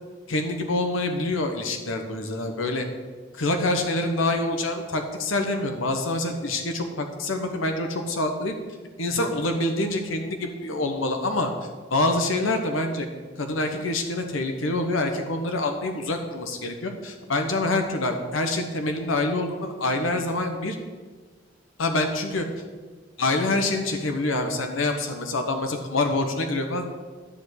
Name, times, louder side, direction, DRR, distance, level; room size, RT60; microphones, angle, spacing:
voice 1, 0.3-2.8 3.3-8.5 9.0-11.5 11.9-13.1 13.4-20.8 21.8-22.4 23.2-26.8, left 2 dB, 90° left, 5 dB, 1.1 m, -26 dB
11.0 x 5.1 x 8.1 m, 1.4 s
head